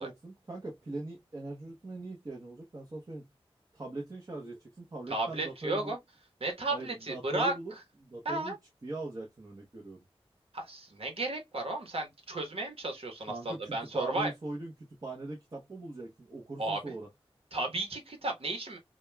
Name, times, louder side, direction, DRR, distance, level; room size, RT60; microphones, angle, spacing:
voice 1, 0.0-3.2 3.7-5.9 6.7-7.7 8.0-8.6 8.8-10.0 13.3-14.7 15.0-17.1, right 2 dB, 35° right, 1.0 m, -41 dB
voice 2, 5.1-6.0 6.4-7.6 8.2-8.6 10.5-14.3 16.6-16.9 17.5-18.8, right 2 dB, 70° right, 1.2 m, -34 dB
5.0 x 2.4 x 2.3 m
wide cardioid pair, 75°, 10 cm